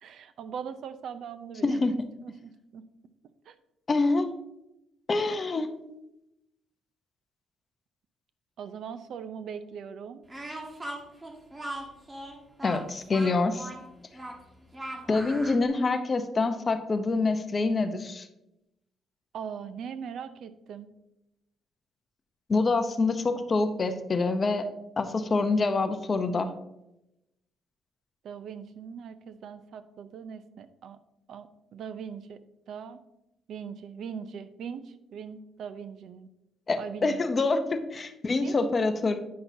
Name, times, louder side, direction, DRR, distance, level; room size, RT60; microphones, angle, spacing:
voice 1, 0.0-2.8 3.5-3.6 8.6-10.2 19.3-20.9 28.2-31.0 31.3-32.4 32.7-33.0 33.5-36.3 36.7-37.3 38.4-38.6, right 7 dB, 70° right, 12 dB, 0.5 m, -40 dB
voice 2, 1.6-2.0 3.9-4.3 5.1-5.7 12.6-13.7 15.1-18.3 22.5-24.7 25.0-26.5 36.7-39.2, left 3 dB, 35° left, 8 dB, 0.7 m, -26 dB
Speech, 10.3-15.6, right 1 dB, 20° right, 1.3 m, -39 dB
9.4 x 5.8 x 2.7 m, 0.90 s
cardioid pair, 90°, 0 cm